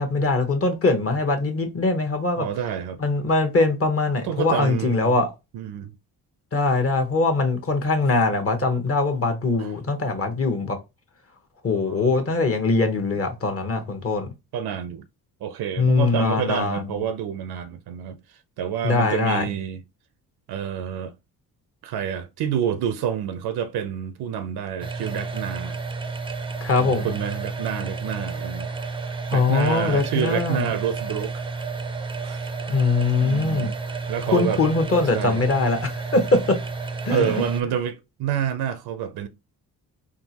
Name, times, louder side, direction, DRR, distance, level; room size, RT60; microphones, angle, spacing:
voice 1, 0.0-2.5 3.0-5.3 6.5-10.8 11.6-14.3 15.8-16.8 18.8-19.5 26.6-27.1 29.3-30.7 32.7-33.7 34.3-36.6 37.0-37.3, left 3 dB, 35° left, 1.0 m, -22 dB
voice 2, 2.4-3.0 4.2-5.1 5.5-5.9 9.6-9.7 11.7-12.1 14.5-15.0 15.4-19.8 20.5-21.1 21.8-25.8 26.8-31.4 32.2-32.5 33.2-33.8 34.1-34.6 35.1-35.4 37.1-39.3, right 9 dB, 75° right, 0.5 m, -28 dB
sound 1, 24.8-37.6, right 4 dB, 15° right, 0.4 m, -31 dB
3.7 x 2.4 x 2.8 m
cardioid pair, 80°, 38 cm